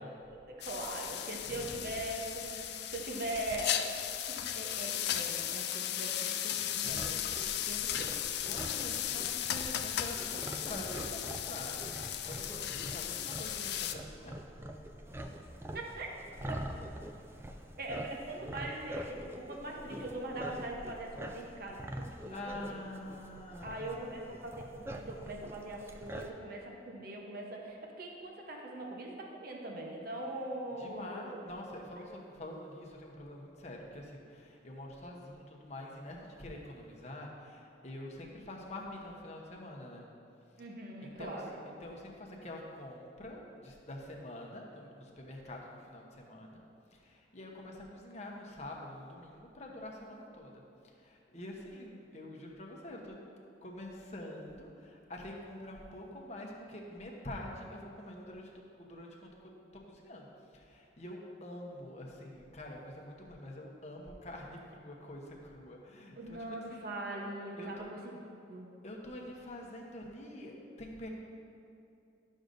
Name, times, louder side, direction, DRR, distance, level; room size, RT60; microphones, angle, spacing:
voice 1, 0.0-3.9 4.3-8.2 15.7-16.1 16.5-16.6 17.8-22.8 23.6-31.4 32.0-32.1 40.6-41.6 66.2-68.1 68.5-68.7, right 1 dB, 55° right, -1 dB, 0.9 m, -41 dB
sound 1, 0.6-13.9, left 11 dB, 60° left, 0.4 m, -36 dB
sound 2, 6.8-26.3, right 1 dB, 15° right, 0.3 m, -45 dB
voice 2, 8.4-14.4 16.4-16.8 22.3-24.3 30.8-40.1 41.0-41.4 41.8-46.6 47.0-50.5 51.0-53.1 53.6-59.3 59.9-60.3 60.5-66.4 66.7-66.8 67.6-67.8 68.8-71.1, left 1 dB, 35° left, -1 dB, 1.0 m, -46 dB
11.5 x 6.3 x 2.6 m, 2.6 s
head